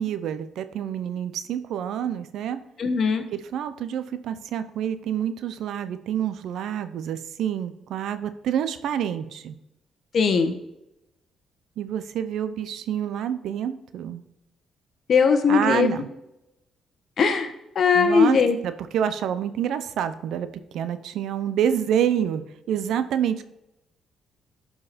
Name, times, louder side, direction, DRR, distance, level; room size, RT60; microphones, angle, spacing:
voice 1, 0.0-2.6 3.3-9.5 11.8-14.2 15.5-16.1 17.9-18.4 18.6-23.4, right 9 dB, 75° right, 12 dB, 0.7 m, -27 dB
voice 2, 2.8-3.2 10.1-10.5 15.1-16.0 17.2-18.6, left 5 dB, 55° left, 7 dB, 1.3 m, -20 dB
12.5 x 4.8 x 4.2 m, 0.89 s
cardioid pair, 90°, 0 cm